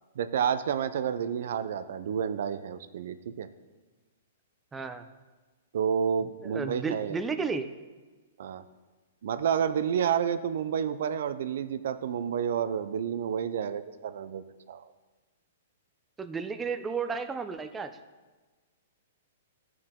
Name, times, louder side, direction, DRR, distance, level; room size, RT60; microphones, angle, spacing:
voice 1, 0.2-3.5 5.7-7.2 8.4-8.6 9.2-14.9, right 8 dB, 70° right, 11 dB, 0.5 m, -30 dB
voice 2, 4.7-5.1 6.4-7.7 16.2-18.0, right 5 dB, 15° right, 8 dB, 0.5 m, -33 dB
13.0 x 4.6 x 3.7 m, 1.3 s
hypercardioid pair, 135°, 0 cm